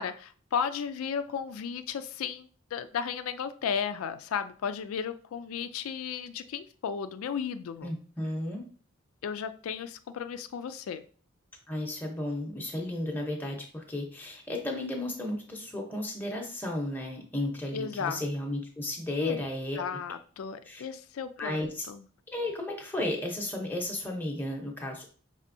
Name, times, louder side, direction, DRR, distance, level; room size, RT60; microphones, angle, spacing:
voice 1, 0.0-7.9 9.2-11.0 17.7-18.2 19.2-19.4 19.8-22.0, left 7 dB, 90° left, 10 dB, 0.4 m, -34 dB
voice 2, 7.8-8.6 11.7-20.0 20.7-20.8 21.4-21.9 22.3-25.1, left 1 dB, 10° left, 0 dB, 0.8 m, -34 dB
5.3 x 3.5 x 2.6 m, 0.43 s
head